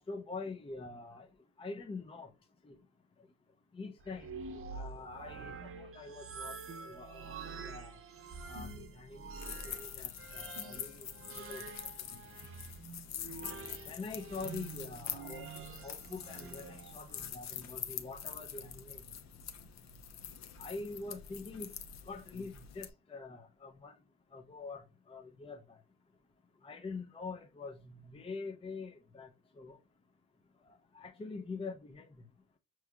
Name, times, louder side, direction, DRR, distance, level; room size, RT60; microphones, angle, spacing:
voice 1, 0.1-1.3 1.6-2.3 2.6-2.8 3.7-6.5 6.8-7.4 7.6-7.9 8.5-11.1 11.4-11.6 13.8-15.5 15.8-19.0 20.6-21.7 22.1-24.0 24.3-25.8 26.6-29.3 29.6-29.8 30.7-32.2, left 3 dB, 20° left, 0.5 m, -45 dB
sound 1, 4.0-17.3, right 4 dB, 45° right, 0.8 m, -47 dB
sound 2, 9.3-22.9, left 8 dB, 60° left, 0.7 m, -45 dB
5.6 x 3.1 x 2.2 m
cardioid pair, 90°, 30 cm